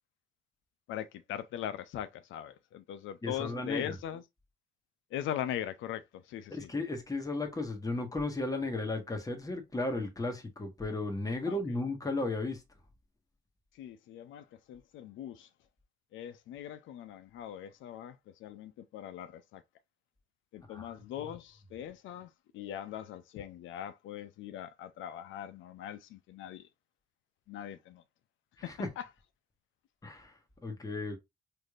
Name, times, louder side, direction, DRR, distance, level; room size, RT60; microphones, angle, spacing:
voice 1, 0.9-4.2 5.1-6.7 11.5-11.6 13.8-15.5 16.1-19.6 20.5-26.7 27.5-28.0 28.6-29.0, left 10 dB, 80° left, 0.4 m, -41 dB
voice 2, 3.2-4.0 6.5-12.6 20.7-21.0 28.6-28.9 30.0-31.2, left 2 dB, 15° left, 1.2 m, -35 dB
4.0 x 3.3 x 2.4 m
cardioid pair, 90°, 20 cm